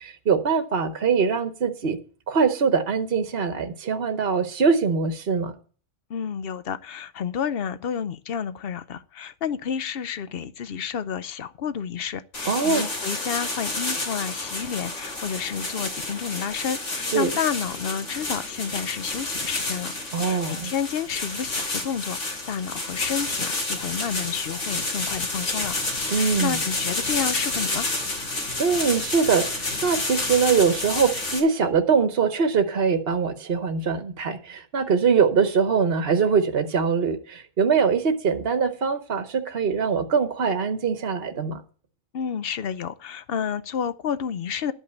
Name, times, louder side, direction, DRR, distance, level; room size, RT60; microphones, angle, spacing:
voice 1, 0.0-2.0 2.3-5.5 12.4-12.9 17.1-17.3 20.1-20.7 26.1-26.6 28.6-41.6, right 5 dB, 50° right, 1.1 m, -23 dB
voice 2, 6.1-19.9 20.2-25.8 26.2-27.9 42.1-44.7, left 7 dB, 55° left, 0.8 m, -30 dB
sound 1, 12.3-31.4, left 2 dB, 90° left, 3.3 m, -30 dB
12.0 x 5.5 x 8.1 m
omnidirectional pair, 1.4 m